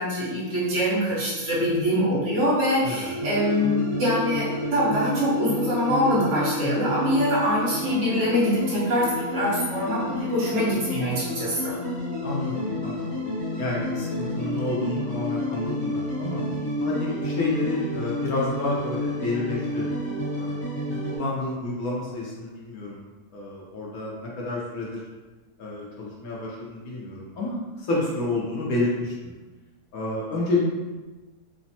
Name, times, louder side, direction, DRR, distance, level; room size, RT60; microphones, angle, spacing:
voice 1, 0.0-11.8, equal, 50° right, -8 dB, 1.3 m, -24 dB
sound 1, 3.1-21.2, left 1 dB, 45° left, 1.2 m, -30 dB
voice 2, 12.2-13.2 13.6-16.4 16.8-19.9 20.4-23.1 23.3-25.0 25.6-29.3 29.9-30.6, left 2 dB, 70° left, -4 dB, 1.0 m, -30 dB
3.3 x 2.0 x 2.7 m, 1.3 s
omnidirectional pair, 1.7 m